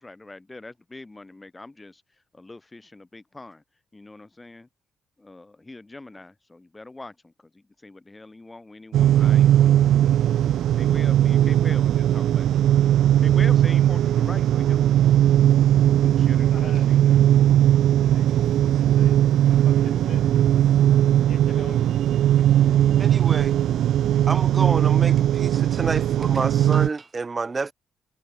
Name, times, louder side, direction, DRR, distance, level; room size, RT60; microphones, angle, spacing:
voice 1, 0.0-2.0 2.3-3.6 3.9-4.7 5.2-7.1 7.8-10.2 10.7-12.5 13.2-14.8 16.0-17.2, left 2 dB, 15° left, 4.4 m, -42 dB
sound 1, 8.9-26.9, right 11 dB, 75° right, 1.6 m, -19 dB
voice 2, 16.5-16.9 18.0-19.2 19.5-20.5 21.3-21.9, left 8 dB, 55° left, 5.4 m, -45 dB
voice 3, 23.0-23.6 24.3-27.7, right 4 dB, 30° right, 2.2 m, -29 dB
cardioid pair, 90°, 0 cm